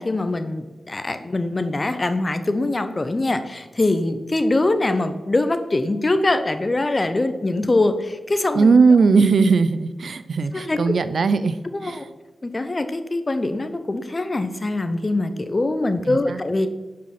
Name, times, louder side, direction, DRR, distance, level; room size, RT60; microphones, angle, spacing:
voice 1, 0.0-8.7 10.5-10.9 11.7-12.0 12.4-16.7, left 2 dB, 35° left, 9 dB, 0.8 m, -23 dB
voice 2, 8.6-12.0 16.1-16.4, right 4 dB, 70° right, 13 dB, 0.5 m, -18 dB
7.6 x 5.4 x 5.9 m, 1.2 s
cardioid pair, 45°, 0 cm